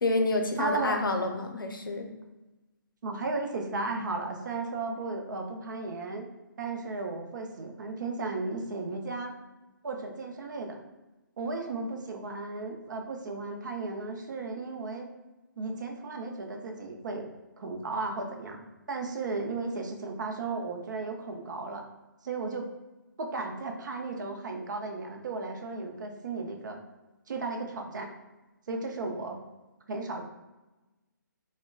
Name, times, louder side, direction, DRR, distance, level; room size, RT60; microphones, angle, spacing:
voice 1, 0.0-2.1, left 2 dB, 90° left, 4 dB, 0.5 m, -28 dB
voice 2, 0.6-1.0 3.0-6.3 6.6-9.3 9.8-10.8 11.4-15.1 15.6-17.3 17.6-21.8 22.2-22.7 23.2-26.8 27.3-28.1 28.7-29.4 29.9-30.2, right 3 dB, 60° right, 3 dB, 0.5 m, -35 dB
3.6 x 2.1 x 2.2 m, 1.1 s
hypercardioid pair, 150°, 11 cm